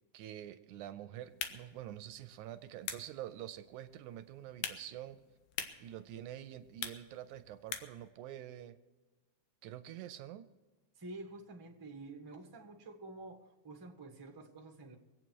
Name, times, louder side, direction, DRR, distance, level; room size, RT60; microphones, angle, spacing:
voice 1, 0.1-5.2 5.8-8.8 9.6-10.5, right 12 dB, 80° right, 12 dB, 1.9 m, -47 dB
sound 1, 1.2-8.1, left 9 dB, 80° left, 2.6 m, -46 dB
voice 2, 10.9-14.9, right 2 dB, 20° right, -1 dB, 0.5 m, -49 dB
24.0 x 8.6 x 4.7 m, 1.3 s
omnidirectional pair, 3.7 m